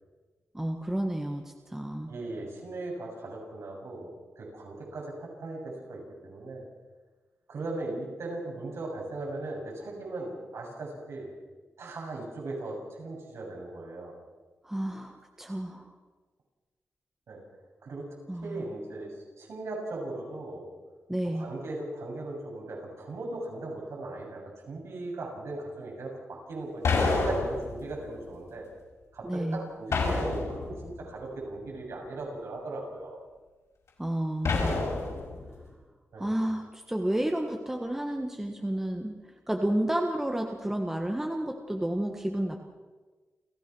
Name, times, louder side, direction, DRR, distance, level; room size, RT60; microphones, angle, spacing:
voice 1, 0.5-2.1 14.6-15.9 18.3-18.6 21.1-21.5 29.2-29.6 34.0-34.8 36.2-39.2 39.5-42.6, right 1 dB, 10° right, 3 dB, 1.5 m, -31 dB
voice 2, 2.1-6.6 7.5-11.3 11.8-14.1 17.3-17.4 17.8-18.1 18.3-20.7 21.2-28.7 29.1-33.2 36.1-36.3, right 2 dB, 70° right, -1 dB, 7.4 m, -38 dB
sound 1, 26.8-28.0 29.9-30.9 34.4-35.5, left 3 dB, 70° left, 6.1 m, -28 dB
29.5 x 15.5 x 6.3 m, 1.3 s
wide cardioid pair, 130°, 5 cm